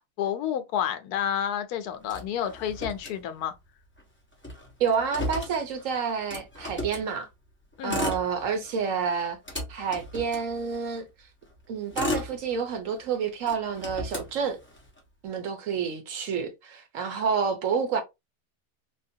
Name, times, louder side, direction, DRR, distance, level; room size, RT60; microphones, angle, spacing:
voice 1, 0.0-3.5 7.8-8.0, left 9 dB, 85° left, 1.1 m, -30 dB
Motor vehicle (road), 2.1-3.7 4.0-4.1 4.3-7.1 7.7-8.8 9.2-11.0 11.6-13.0 13.4-15.0, left 1 dB, 15° left, 0.5 m, -35 dB
voice 2, 4.8-7.3 7.8-9.4 9.7-11.1 11.7-14.6 15.2-18.0, right 6 dB, 65° right, 1.0 m, -29 dB
3.6 x 2.2 x 2.6 m
omnidirectional pair, 1.6 m